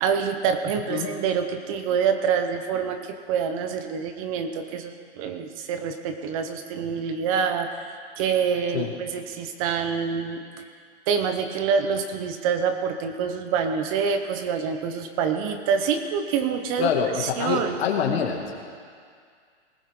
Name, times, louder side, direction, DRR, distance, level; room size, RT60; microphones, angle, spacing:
voice 1, 0.0-10.4 11.1-17.8, right 6 dB, 30° right, 7 dB, 0.8 m, -26 dB
voice 2, 16.8-18.6, left 7 dB, 65° left, 1 dB, 2.3 m, -25 dB
19.5 x 14.0 x 3.8 m, 2.1 s
hypercardioid pair, 155°, 33 cm